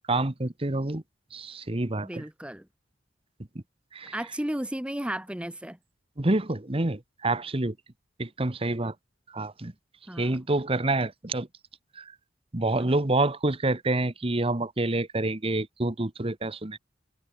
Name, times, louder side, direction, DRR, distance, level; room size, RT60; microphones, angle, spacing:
voice 1, 0.1-1.0 1.3-2.2 3.9-4.1 6.2-7.7 8.2-8.9 9.3-9.7 10.2-11.5 12.0-12.1 12.5-16.8, right 2 dB, 30° right, 1.2 m, -27 dB
voice 2, 2.0-2.7 4.1-5.8 10.1-10.4 12.7-13.0, right 1 dB, 5° right, 1.0 m, -34 dB
head